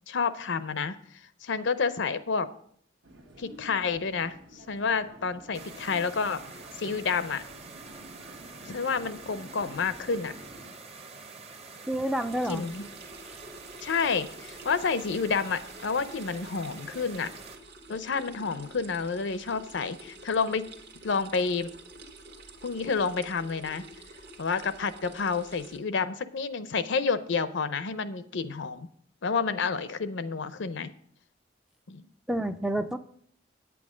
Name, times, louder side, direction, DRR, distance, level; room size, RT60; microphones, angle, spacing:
voice 1, 0.1-1.0 1.4-2.5 3.4-6.4 6.8-7.4 8.7-10.3 12.5-12.9 13.8-17.3 17.9-20.7 21.0-21.7 22.6-23.9 24.4-28.9 29.2-30.9 31.9-32.0, left 5 dB, 65° left, 14 dB, 0.6 m, -29 dB
sound 1, 3.0-10.7, equal, 80° right, 1.4 m, -49 dB
sound 2, 5.5-17.6, right 4 dB, 35° right, 0.9 m, -47 dB
voice 2, 11.9-12.7 32.3-33.0, right 1 dB, 5° right, 9 dB, 0.4 m, -29 dB
sound 3, 12.0-25.8, right 2 dB, 60° right, 1.3 m, -49 dB
9.1 x 8.5 x 5.0 m, 0.62 s
head